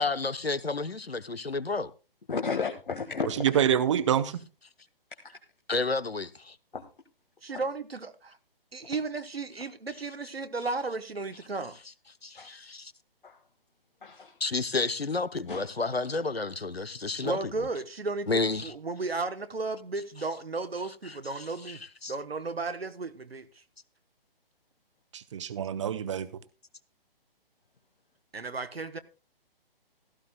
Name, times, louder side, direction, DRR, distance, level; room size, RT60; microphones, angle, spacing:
voice 1, 0.0-1.9 5.7-6.5 12.2-12.9 14.4-17.5 18.3-18.7 21.1-22.1, left 3 dB, 90° left, 0.9 m, -31 dB
voice 2, 2.3-3.4 6.7-6.8 7.5-7.6 12.4-12.5 13.2-13.4 14.0-14.3 15.5-15.7, left 5 dB, 60° left, 1.7 m, -33 dB
voice 3, 3.3-4.4 25.1-26.3, right 9 dB, 30° right, 0.8 m, -26 dB
voice 4, 7.4-8.4 8.7-11.8 17.2-18.3 18.6-21.8 22.1-23.5 28.3-29.0, right 3 dB, 80° right, 1.2 m, -34 dB
16.5 x 14.0 x 2.2 m
figure-of-eight pair, 135°, 30 cm